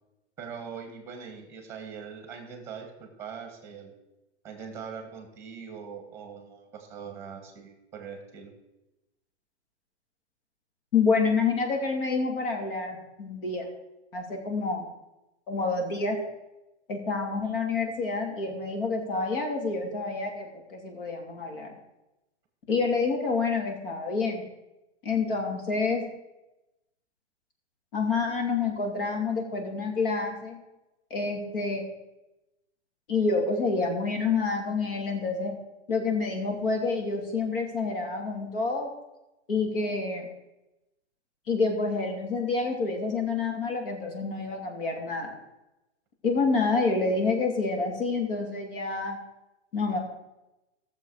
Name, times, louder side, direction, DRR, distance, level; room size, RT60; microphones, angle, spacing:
voice 1, 0.4-4.0 4.4-8.5, right 6 dB, 5° right, 4 dB, 1.7 m, -42 dB
voice 2, 10.9-13.7 14.1-14.9 15.5-16.2 16.9-21.7 22.7-24.4 25.0-26.0 27.9-30.6 31.1-31.9 33.1-35.5 35.9-38.9 39.5-40.3 41.5-45.4 46.2-49.2 49.7-50.0, left 4 dB, 50° left, 2 dB, 2.8 m, -28 dB
16.0 x 7.2 x 4.9 m, 0.97 s
hypercardioid pair, 170°, 34 cm